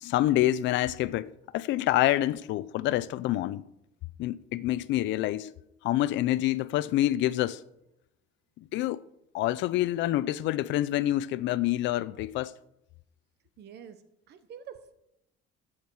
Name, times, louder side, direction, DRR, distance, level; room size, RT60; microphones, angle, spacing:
voice 1, 0.0-3.6 4.2-5.5 5.8-7.6 8.6-9.0 9.3-12.5, left 14 dB, 65° left, 0.5 m, -27 dB
voice 2, 13.6-14.9, right 8 dB, 55° right, 0.9 m, -47 dB
17.0 x 7.3 x 4.7 m
cardioid pair, 155°, 21 cm